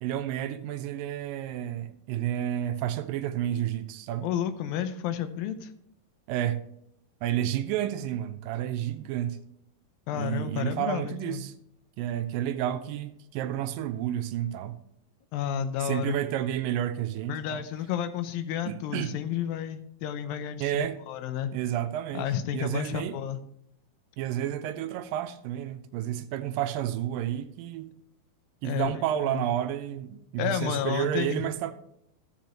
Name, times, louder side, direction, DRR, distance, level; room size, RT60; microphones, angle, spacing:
voice 1, 0.0-4.3 6.3-6.6 7.2-9.4 10.1-11.5 12.0-14.8 15.8-17.6 18.7-19.1 20.6-21.0 21.5-23.2 24.2-27.9 28.6-31.7, right 11 dB, 85° right, 2.3 m, -31 dB
voice 2, 4.2-5.7 10.1-11.4 15.3-16.2 17.3-21.5 22.1-23.4 28.6-28.9 29.2-29.4 30.4-31.4, left 9 dB, 85° left, 2.5 m, -31 dB
14.5 x 7.6 x 3.0 m
omnidirectional pair, 4.1 m